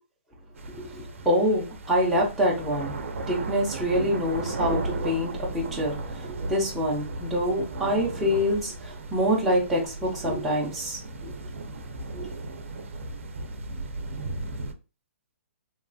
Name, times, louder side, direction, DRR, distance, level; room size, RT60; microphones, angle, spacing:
sound 1, 0.6-14.7, right 3 dB, 70° right, 0.5 m, -35 dB
voice 1, 0.9-2.9 3.3-11.3 12.1-12.3, equal, ahead, -6 dB, 0.4 m, -26 dB
3.0 x 2.3 x 2.5 m, 0.32 s
hypercardioid pair, 175°, 7 cm